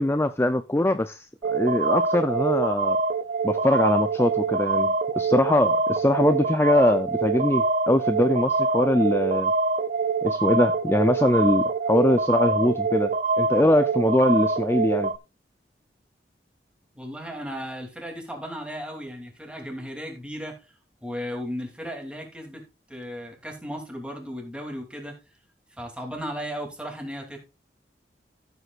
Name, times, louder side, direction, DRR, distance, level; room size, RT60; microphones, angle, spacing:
voice 1, 0.0-3.0 3.4-9.5 10.2-15.1, left 1 dB, 15° left, 0.5 m, -22 dB
sound 1, 1.4-15.2, right 4 dB, 45° right, 0.5 m, -25 dB
voice 2, 16.9-20.6 21.0-25.2 25.8-27.4, equal, 5° right, 2.8 m, -35 dB
14.5 x 7.9 x 2.4 m
head